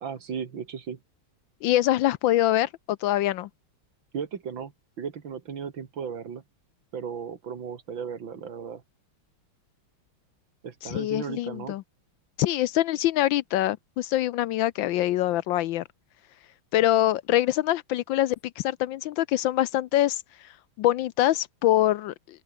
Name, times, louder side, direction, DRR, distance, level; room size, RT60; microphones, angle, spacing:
voice 1, 0.0-1.0 4.1-4.7 5.0-6.4 6.9-8.8 10.6-11.8, right 7 dB, 70° right, 2.6 m, -35 dB
voice 2, 1.6-3.5 10.8-11.8 12.4-15.8 16.7-20.2 20.8-22.4, left 14 dB, 75° left, 1.3 m, -24 dB
open air
omnidirectional pair, 2.3 m